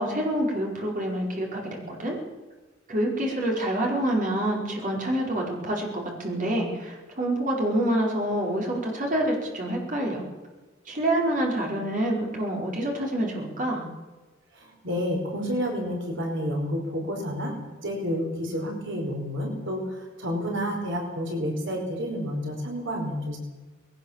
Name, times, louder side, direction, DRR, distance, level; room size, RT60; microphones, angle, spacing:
voice 1, 0.0-2.1 2.9-10.2 10.9-13.8, right 1 dB, 40° right, -1 dB, 5.1 m, -27 dB
voice 2, 14.5-17.5 17.8-23.4, equal, 65° right, 1 dB, 4.8 m, -30 dB
21.0 x 18.5 x 7.5 m, 1.2 s
head